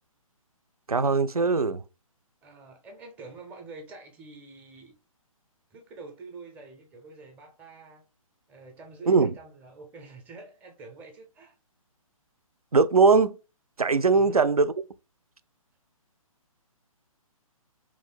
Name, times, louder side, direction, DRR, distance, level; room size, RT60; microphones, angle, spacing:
voice 1, 0.9-1.8 9.1-9.3 12.7-13.4 13.8-14.7, right 4 dB, 90° right, 0.4 m, -20 dB
voice 2, 2.4-5.0 5.7-8.0 8.5-11.6 14.1-14.4, right 3 dB, 10° right, 0.5 m, -47 dB
3.1 x 2.5 x 3.5 m
figure-of-eight pair, 135°, 18 cm